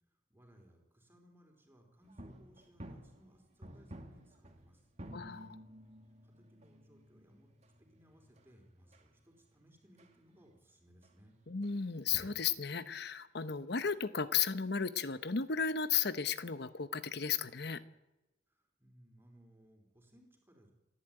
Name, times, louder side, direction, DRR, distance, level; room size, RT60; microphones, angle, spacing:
voice 1, 0.1-4.9 6.2-7.5 7.8-11.4 18.5-20.7, equal, 10° right, 2 dB, 4.2 m, -64 dB
sound 1, 2.0-10.2 10.4-10.6 11.0-11.2 11.6-11.8 12.0-12.5, equal, 35° right, 2.2 m, -53 dB
voice 2, 5.1-5.6 11.5-17.8, left 6 dB, 60° left, 13 dB, 1.0 m, -34 dB
29.5 x 11.5 x 8.9 m, 1.0 s
head